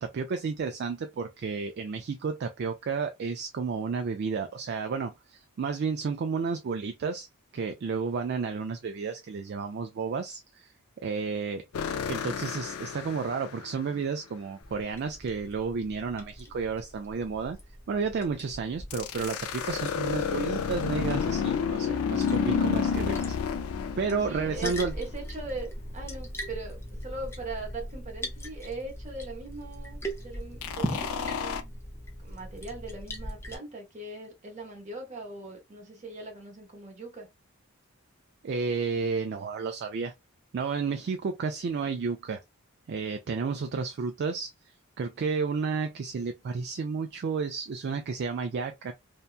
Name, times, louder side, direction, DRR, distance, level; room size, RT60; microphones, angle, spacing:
voice 1, 0.0-7.3 7.5-10.7 11.0-11.6 12.1-17.6 17.9-23.4 24.0-24.9 38.4-40.1 40.5-42.4 42.9-44.5 45.0-48.9, right 5 dB, 50° right, 0.3 m, -31 dB
sound 1, 11.7-13.9 18.9-25.2 30.6-31.6, left 7 dB, 75° left, 0.4 m, -30 dB
Liquid, 14.6-33.6, equal, 10° left, 0.5 m, -40 dB
voice 2, 24.2-31.7 32.2-37.3, right 3 dB, 35° right, 0.9 m, -40 dB
2.8 x 2.2 x 2.4 m
head